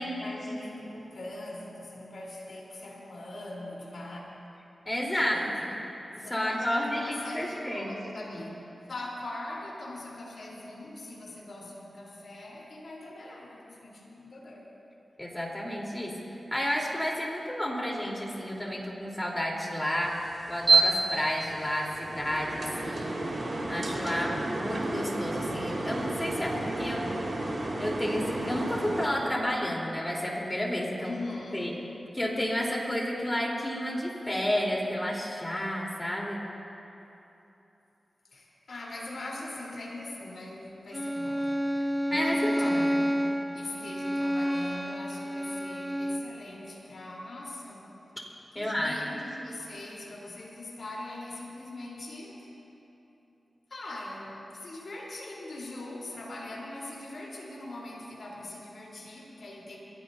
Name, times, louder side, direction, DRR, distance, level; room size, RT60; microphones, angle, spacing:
voice 1, 0.0-4.2 5.2-5.6 6.2-8.6 8.9-14.7 31.0-31.8 38.3-41.6 42.0-43.3 43.5-47.9 48.5-52.5 53.7-59.8, left 2 dB, 70° left, -4 dB, 3.9 m, -41 dB
voice 2, 4.9-5.5 6.1-7.9 15.2-16.1 16.5-20.2 20.5-23.3 23.7-27.1 27.8-31.1 31.5-31.7 32.1-36.4 42.1-42.9 48.6-49.0, equal, 20° left, -2 dB, 3.9 m, -31 dB
sound 1, 20.0-29.1, right 3 dB, 55° right, 2.7 m, -30 dB
Bowed string instrument, 40.9-46.4, equal, 10° right, 0.8 m, -29 dB
22.5 x 16.5 x 2.8 m, 3.0 s
cardioid pair, 45°, 0 cm